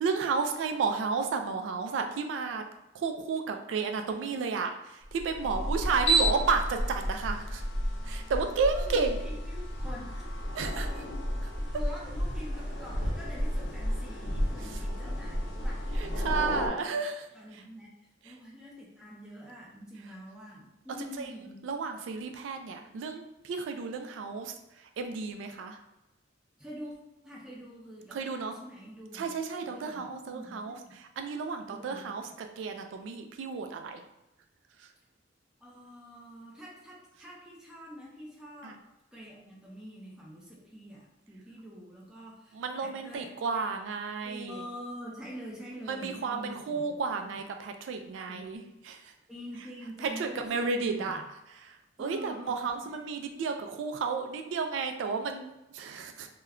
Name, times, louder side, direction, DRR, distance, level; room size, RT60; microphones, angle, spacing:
voice 1, 0.0-2.6 2.9-7.6 8.0-9.2 10.6-10.9 16.0-17.3 21.2-21.3 21.6-24.5 25.0-25.8 28.1-28.6 29.1-30.8 31.2-34.0 38.6-38.8 42.5-44.6 45.9-49.1 50.0-51.2 51.6-56.3, right 4 dB, 80° right, 6 dB, 0.3 m, -32 dB
sound 1, 5.1-16.7, equal, 75° left, 0.7 m, -31 dB
voice 2, 5.5-6.4 8.8-10.3 10.6-11.3 11.7-16.7 17.3-18.0 18.2-21.6 26.6-27.0 27.2-29.3 29.6-30.9 31.6-32.3 35.6-38.8 39.1-43.6 44.2-46.8 47.1-47.4 48.3-48.6 49.3-51.1 52.0-52.9, equal, 5° right, -4 dB, 0.6 m, -46 dB
2.2 x 2.2 x 3.5 m, 0.92 s
head